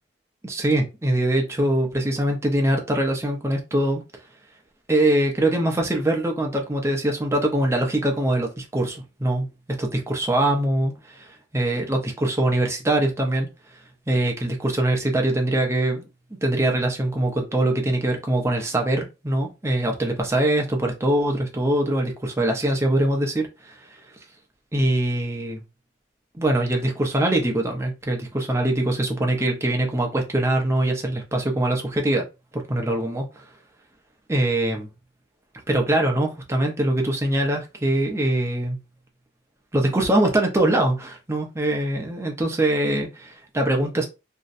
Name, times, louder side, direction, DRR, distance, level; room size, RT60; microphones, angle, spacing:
voice 1, 0.4-4.0 4.9-9.5 9.8-13.5 14.1-16.1 16.4-24.0 24.7-25.6 26.3-32.2 32.5-33.2 34.3-34.9 35.7-38.8 39.7-44.1, right 1 dB, 15° right, 1 dB, 0.5 m, -23 dB
2.6 x 2.1 x 2.4 m, 0.28 s
head